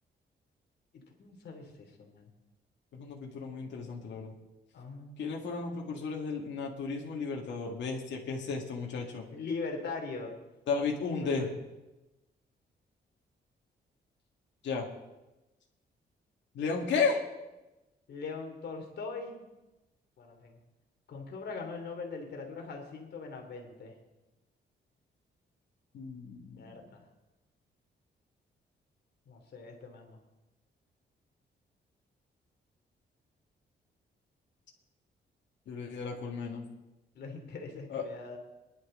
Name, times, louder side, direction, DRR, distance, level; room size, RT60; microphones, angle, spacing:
voice 1, 0.9-2.3 4.7-5.3 9.3-10.4 11.2-11.5 18.1-19.4 20.2-20.6 21.1-23.9 26.6-27.1 29.3-30.2 37.1-38.4, left 4 dB, 65° left, 3 dB, 2.8 m, -41 dB
voice 2, 2.9-4.3 5.2-9.2 10.7-11.5 14.6-14.9 16.6-17.2 25.9-26.6 35.7-36.7 37.9-38.0, left 5 dB, 90° left, 0 dB, 2.1 m, -33 dB
22.5 x 11.0 x 3.8 m, 1.0 s
wide cardioid pair, 145°, 18 cm